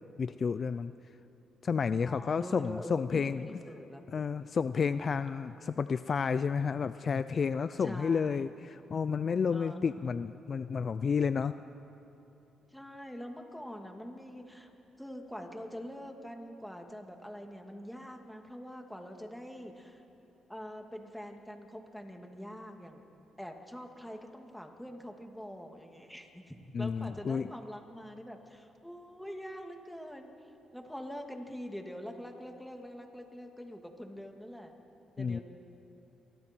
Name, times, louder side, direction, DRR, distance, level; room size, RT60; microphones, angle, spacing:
voice 1, 0.2-0.9 1.6-3.5 4.1-11.5 26.7-27.5 35.2-35.4, left 6 dB, 45° left, 13 dB, 0.4 m, -31 dB
voice 2, 2.0-4.0 7.8-8.6 9.5-10.1 12.7-14.7 15.0-20.0 20.5-23.0 23.4-30.3 30.7-34.7 35.2-35.4, equal, 5° left, 3 dB, 2.3 m, -44 dB
29.5 x 23.5 x 4.5 m, 2.9 s
cardioid pair, 90°, 0 cm